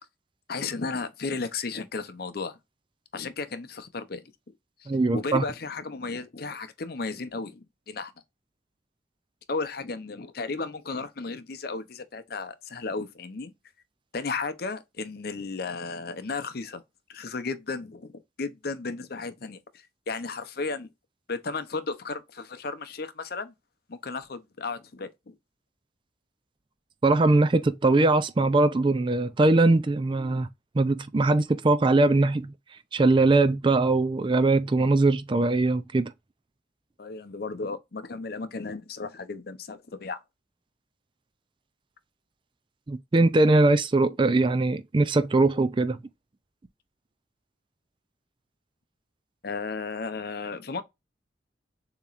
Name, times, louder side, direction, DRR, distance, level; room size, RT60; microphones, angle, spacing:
voice 1, 0.5-2.6 3.1-4.2 4.8-4.9 5.1-8.1 9.5-13.5 14.1-16.8 17.1-18.1 18.4-20.9 21.3-23.5 23.9-25.4 37.0-40.2 49.4-50.8, left 4 dB, 55° left, 0.7 m, -34 dB
voice 2, 4.9-5.4 27.0-30.5 30.8-32.5 32.9-36.1 42.9-46.0, right 2 dB, 25° right, 0.4 m, -21 dB
6.9 x 3.0 x 2.4 m
head